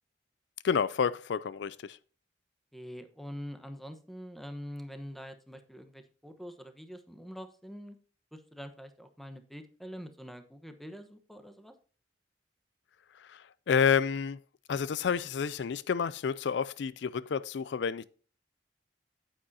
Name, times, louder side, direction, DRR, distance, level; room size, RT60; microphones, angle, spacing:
voice 1, 0.6-2.0 13.3-14.4 14.7-18.0, left 6 dB, 70° left, 0.4 m, -29 dB
voice 2, 2.7-8.0 8.3-11.7, equal, ahead, 1.0 m, -45 dB
9.3 x 8.9 x 2.7 m
head